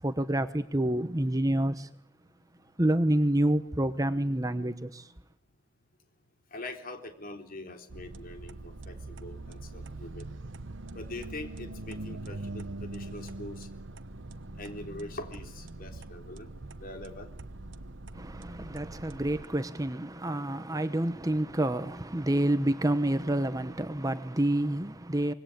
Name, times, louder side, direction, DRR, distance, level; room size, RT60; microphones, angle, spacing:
voice 1, 0.0-1.9 2.8-5.1 18.1-25.3, right 1 dB, 20° right, 1.0 m, -28 dB
voice 2, 6.5-10.3 10.9-13.7 14.6-16.5 16.8-17.3, left 2 dB, 45° left, 3.7 m, -43 dB
sound 1, 7.9-19.5, right 2 dB, 65° right, 1.0 m, -42 dB
25.5 x 20.5 x 8.7 m
head